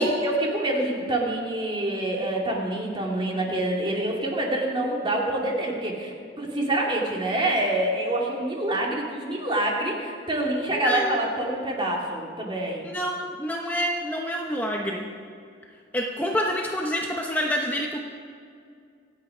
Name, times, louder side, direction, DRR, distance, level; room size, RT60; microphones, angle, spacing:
voice 1, 0.0-12.9, right 1 dB, 25° right, -2 dB, 2.5 m, -26 dB
voice 2, 10.7-11.2 12.8-15.1 15.9-18.0, equal, 10° left, -1 dB, 0.9 m, -27 dB
24.5 x 8.6 x 5.0 m, 2.3 s
head